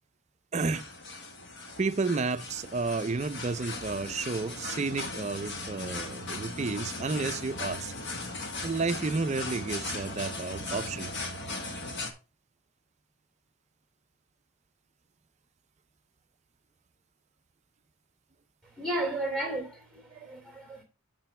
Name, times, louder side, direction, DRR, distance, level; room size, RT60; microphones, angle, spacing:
voice 1, 0.5-0.9 1.8-7.9 8.6-11.1, right 3 dB, 30° right, 0.4 m, -31 dB
sound 1, 0.6-12.1, left 2 dB, 50° left, 1.5 m, -38 dB
voice 2, 18.8-20.8, right 1 dB, 5° left, 2.9 m, -33 dB
8.8 x 6.9 x 3.3 m
head